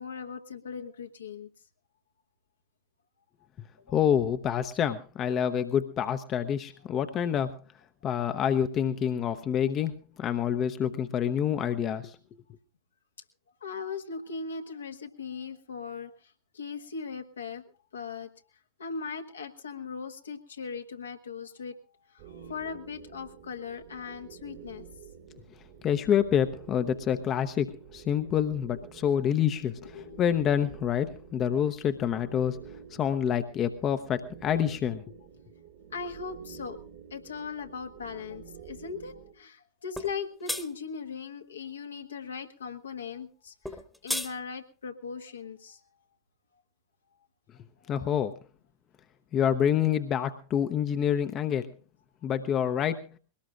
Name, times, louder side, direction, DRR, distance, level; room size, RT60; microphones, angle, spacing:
voice 1, 0.0-1.5 3.8-3.9 13.6-17.6 17.9-18.3 18.8-21.7 22.1-24.9 29.8-30.2 35.9-36.8 37.1-45.8, left 5 dB, 70° left, 5 dB, 1.4 m, -39 dB
voice 2, 3.9-7.5 8.0-9.9 10.2-12.2 25.8-32.6 32.9-35.0 47.9-48.3 49.3-51.7 52.2-53.0, left 9 dB, 30° left, 10 dB, 0.8 m, -27 dB
sound 1, 22.2-39.3, right 8 dB, 50° right, 1.7 m, -49 dB
sound 2, 40.0-40.1 40.5-40.6 43.6-44.3, left 1 dB, ahead, 1.3 m, -32 dB
22.0 x 18.5 x 2.5 m, 0.35 s
figure-of-eight pair, 90°, 0 cm